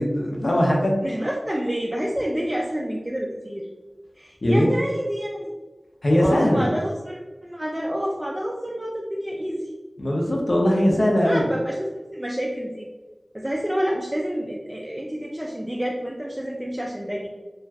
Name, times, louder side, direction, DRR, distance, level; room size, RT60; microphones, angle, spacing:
voice 1, 0.0-0.9 4.4-4.7 6.0-6.7 10.0-11.5, equal, 60° left, -2 dB, 0.6 m, -20 dB
voice 2, 1.0-3.7 4.2-5.5 6.1-9.6 11.2-12.9 13.3-17.3, equal, 15° right, -2 dB, 0.3 m, -28 dB
2.5 x 2.3 x 3.2 m, 1.2 s
wide cardioid pair, 60°, 0 cm